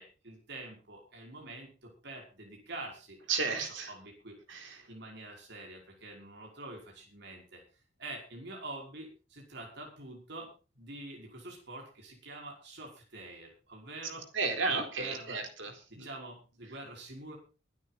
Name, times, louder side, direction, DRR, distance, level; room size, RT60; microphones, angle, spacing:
voice 1, 0.0-3.2 3.4-3.6 3.9-4.4 4.9-7.6 8.0-14.3 14.7-15.4 15.9-17.3, right 2 dB, 60° right, 0 dB, 5.3 m, -46 dB
voice 2, 3.3-3.9 4.5-4.8 14.3-16.1, right 4 dB, 80° right, 5 dB, 4.1 m, -33 dB
22.5 x 9.4 x 4.1 m, 0.34 s
head